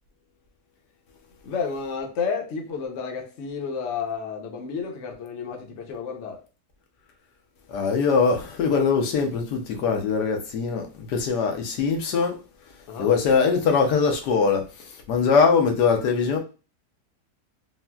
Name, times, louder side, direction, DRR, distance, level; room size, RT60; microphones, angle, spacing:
voice 1, 1.4-6.4 12.9-13.1, left 5 dB, 60° left, 0.9 m, -31 dB
voice 2, 7.7-12.4 13.0-16.4, left 5 dB, 85° left, 1.3 m, -22 dB
4.0 x 2.1 x 2.2 m
omnidirectional pair, 1.7 m